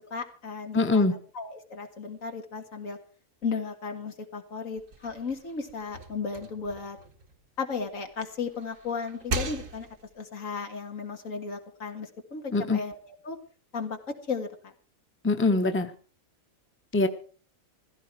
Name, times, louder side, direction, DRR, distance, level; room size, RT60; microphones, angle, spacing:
voice 1, 0.1-1.1 1.4-3.0 3.4-7.0 7.6-9.9 10.2-13.4 13.7-14.7, left 5 dB, 75° left, 5 dB, 2.1 m, -35 dB
voice 2, 0.7-1.1 12.5-12.8 15.2-15.9 16.9-17.1, left 3 dB, 10° left, 8 dB, 1.0 m, -23 dB
sound 1, 4.8-8.0 8.4-10.2, right 2 dB, 75° right, 1.8 m, -38 dB
15.5 x 14.5 x 4.7 m, 0.39 s
omnidirectional pair, 1.4 m